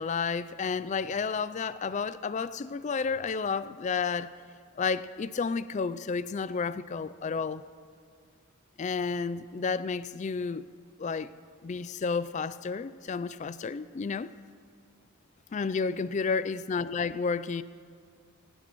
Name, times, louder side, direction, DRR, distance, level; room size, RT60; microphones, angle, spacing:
voice 1, 0.0-4.3 4.8-7.6 8.8-10.6 11.0-11.3 11.6-14.3 15.5-17.6, left 5 dB, 35° left, 16 dB, 0.3 m, -31 dB
19.5 x 19.0 x 3.1 m, 2.2 s
head